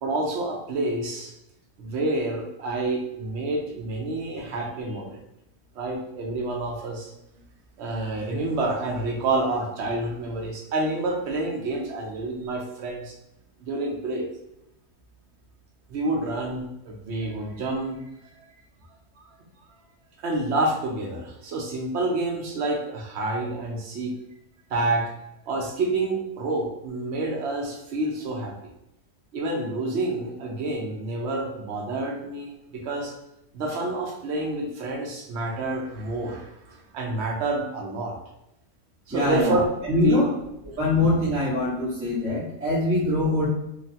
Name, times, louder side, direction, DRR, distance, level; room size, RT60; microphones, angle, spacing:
voice 1, 0.0-1.3 1.8-5.2 5.8-7.1 7.8-13.1 13.6-14.2 15.9-18.0 20.2-24.1 24.7-25.1 25.5-28.5 29.3-33.1 33.5-38.2 39.1-39.7 39.9-40.3, right 2 dB, 60° right, 0 dB, 0.7 m, -28 dB
voice 2, 39.1-39.6 39.9-40.3 40.8-43.5, left 2 dB, 10° right, -8 dB, 0.8 m, -23 dB
3.1 x 2.2 x 2.7 m, 0.86 s
omnidirectional pair, 1.6 m